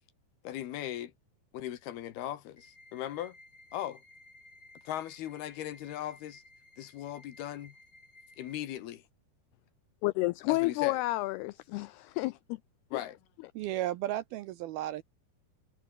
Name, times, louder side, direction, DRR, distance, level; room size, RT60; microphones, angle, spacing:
voice 1, 0.4-1.1 1.5-3.4 3.7-4.0 4.8-6.4 6.8-7.7 8.4-9.0 10.5-11.0 12.9-13.2, left 12 dB, 70° left, 3.2 m, -38 dB
sound 1, 2.6-8.6, left 2 dB, 20° left, 7.9 m, -57 dB
voice 2, 10.0-12.6 12.9-13.0, left 20 dB, 85° left, 2.3 m, -30 dB
voice 3, 13.6-15.0, right 14 dB, 80° right, 2.3 m, -34 dB
omnidirectional pair, 5.1 m